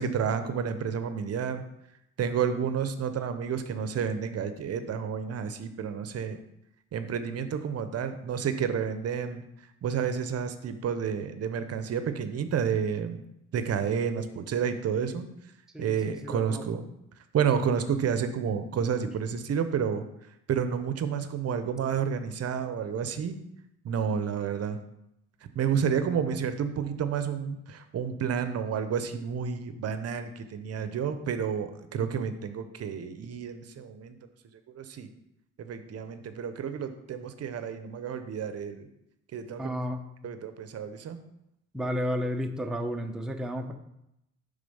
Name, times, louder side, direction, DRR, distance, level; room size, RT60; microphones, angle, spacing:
voice 1, 0.0-1.6 2.2-6.4 6.9-9.4 9.8-13.2 13.5-15.3 15.8-16.9 17.3-20.0 20.5-23.3 23.8-24.8 25.5-34.2 34.7-35.1 35.6-38.9 39.3-39.8 40.2-41.2, right 7 dB, 55° right, 10 dB, 0.6 m, -30 dB
voice 2, 15.7-16.7 25.7-26.3 39.6-40.0 41.7-43.7, equal, ahead, 4 dB, 0.6 m, -33 dB
6.7 x 3.6 x 5.4 m, 0.82 s
cardioid pair, 90°, 30 cm